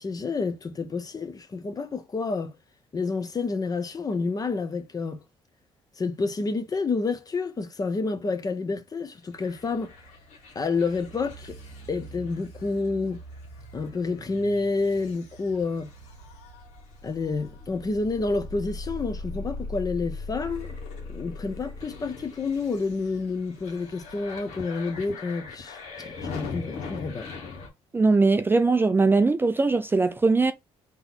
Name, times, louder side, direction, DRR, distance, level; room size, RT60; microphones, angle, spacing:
voice 1, 0.0-2.5 2.9-5.2 6.0-9.9 10.5-11.6 11.9-13.2 13.7-15.9 17.0-20.8 21.1-27.3, left 4 dB, 35° left, 0.8 m, -29 dB
sound 1, 9.4-27.7, left 3 dB, 85° left, 1.5 m, -40 dB
voice 2, 27.9-30.5, right 3 dB, 20° right, 0.4 m, -20 dB
4.0 x 3.0 x 4.0 m
cardioid pair, 85°, 12 cm